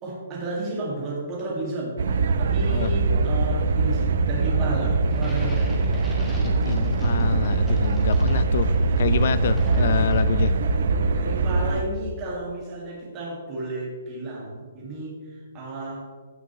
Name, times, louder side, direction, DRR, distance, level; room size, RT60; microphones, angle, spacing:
voice 1, 0.0-2.0 2.4-5.7 9.7-10.0 10.6-16.1, right 2 dB, 15° right, -4 dB, 2.0 m, -33 dB
sound 1, 2.0-11.8, right 3 dB, 55° right, 0.6 m, -22 dB
sound 2, 5.1-10.6, left 1 dB, 5° left, 1.1 m, -41 dB
voice 2, 6.4-8.7 9.0-10.5, left 8 dB, 45° left, 15 dB, 0.4 m, -27 dB
15.5 x 6.0 x 3.1 m, 1.5 s
hypercardioid pair, 175°, 0 cm